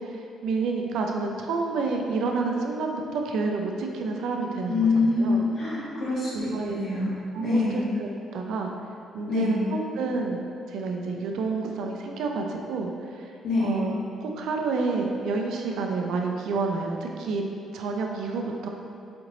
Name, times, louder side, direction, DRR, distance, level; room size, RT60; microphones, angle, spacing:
voice 1, 0.0-5.5 6.3-6.8 7.3-8.7 9.1-10.4 10.7-13.3 13.6-17.4 17.7-18.7, right 4 dB, 85° right, 2 dB, 0.4 m, -29 dB
voice 2, 4.7-7.8 9.3-9.6 13.4-13.8, left 3 dB, 55° left, -7 dB, 1.5 m, -25 dB
4.2 x 3.0 x 3.8 m, 2.5 s
cardioid pair, 90°, 0 cm